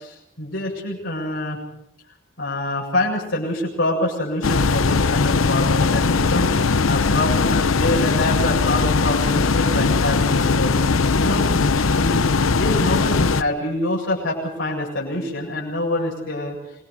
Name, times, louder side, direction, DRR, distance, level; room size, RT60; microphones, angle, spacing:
voice 1, 0.0-1.6 2.4-6.5 6.8-10.8 11.2-11.4 11.9-16.6, left 1 dB, 65° left, -3 dB, 7.8 m, -26 dB
sound 1, 4.4-13.4, left 4 dB, 85° left, 0.8 m, -19 dB
28.5 x 22.5 x 5.1 m, 0.78 s
head